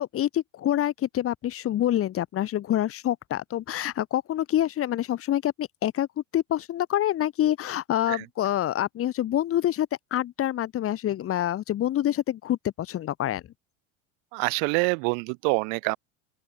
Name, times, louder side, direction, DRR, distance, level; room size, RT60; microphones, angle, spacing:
voice 1, 0.0-13.4, left 12 dB, 35° left, 1.2 m, -26 dB
voice 2, 14.3-16.0, right 40 dB or more, 65° right, 1.5 m, -26 dB
open air
supercardioid pair, 105°, 38 cm